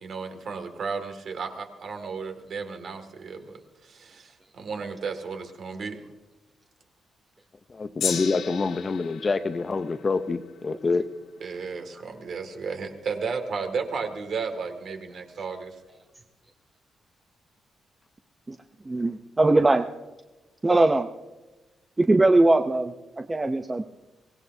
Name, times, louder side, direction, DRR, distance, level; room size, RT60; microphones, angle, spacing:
voice 1, 0.0-6.0 11.4-15.7, right 5 dB, 55° right, 5 dB, 2.0 m, -34 dB
voice 2, 7.7-11.1, left 4 dB, 30° left, 10 dB, 0.6 m, -26 dB
Gong, 8.0-14.4 15.1-15.2, left 8 dB, 80° left, 1.4 m, -38 dB
voice 3, 18.9-19.9 20.6-21.1 22.0-23.8, right 2 dB, 15° right, 5 dB, 0.5 m, -21 dB
24.0 x 18.0 x 2.7 m, 1.1 s
cardioid pair, 150°, 0 cm